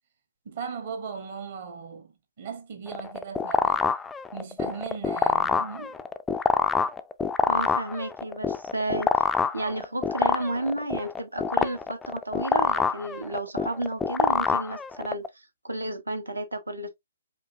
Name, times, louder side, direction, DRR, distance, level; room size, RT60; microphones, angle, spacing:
voice 1, 0.4-2.1 2.4-3.9 4.3-6.0, right 6 dB, 50° right, 1.0 m, -37 dB
sound 1, 2.9-15.3, left 5 dB, 10° left, 0.3 m, -25 dB
voice 2, 7.5-9.1 9.5-16.9, right 1 dB, 85° right, 1.0 m, -32 dB
5.0 x 2.7 x 2.6 m
figure-of-eight pair, 130°, 0 cm